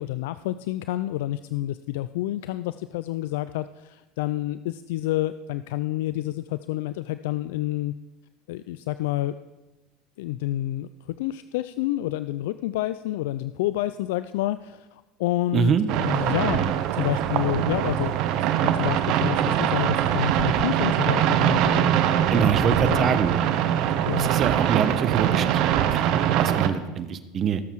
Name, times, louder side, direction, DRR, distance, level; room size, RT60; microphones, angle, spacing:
voice 1, 0.0-7.9 8.5-9.4 10.2-15.7 16.0-18.2 18.6-23.2 24.1-24.3, left 15 dB, 75° left, 13 dB, 0.3 m, -29 dB
voice 2, 15.5-15.9 22.3-23.4 24.2-27.6, right 7 dB, 40° right, 12 dB, 1.0 m, -25 dB
sound 1, 15.9-26.7, right 10 dB, 60° right, 0.9 m, -23 dB
18.0 x 7.3 x 4.7 m, 1.1 s
hypercardioid pair, 85°, 0 cm